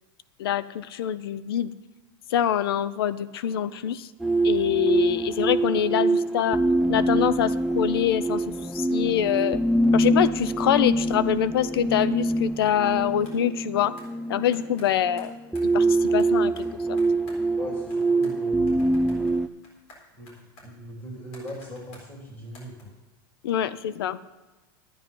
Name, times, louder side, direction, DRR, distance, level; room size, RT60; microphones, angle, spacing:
voice 1, 0.4-1.7 2.3-4.1 4.4-6.6 6.9-9.6 9.9-13.9 14.3-15.3 15.7-17.0 23.4-24.2, left 10 dB, 90° left, 16 dB, 0.6 m, -25 dB
sound 1, 4.2-19.5, right 2 dB, 5° right, 0.4 m, -24 dB
sound 2, 12.7-12.8 13.3-13.4 14.0-14.1 14.5-15.7 16.2-17.6 17.9-18.4 18.7-22.1 22.5-22.8, left 1 dB, 65° left, 4.1 m, -51 dB
voice 2, 17.6-19.4 20.1-20.3 20.6-22.9, equal, 25° left, -2 dB, 3.2 m, -39 dB
11.0 x 9.5 x 5.3 m, 1.2 s
supercardioid pair, 135°, 12 cm